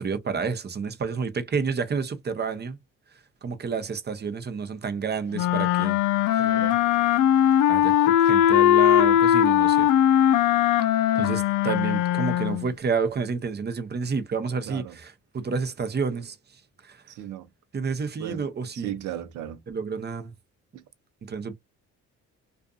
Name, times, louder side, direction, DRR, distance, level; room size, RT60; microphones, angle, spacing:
voice 1, 0.0-2.8 3.4-6.0 6.3-6.5 7.7-9.9 11.1-17.0 17.7-18.9 19.7-20.3 21.2-21.5, right 5 dB, 35° right, 0.7 m, -30 dB
sound 1, 5.3-12.7, left 11 dB, 80° left, 0.5 m, -20 dB
voice 2, 6.4-6.8 14.7-15.0 17.1-17.5 18.2-18.5 18.7-19.6 20.7-20.8, right 11 dB, 85° right, 0.7 m, -36 dB
2.5 x 2.4 x 2.3 m
cardioid pair, 90°, 30 cm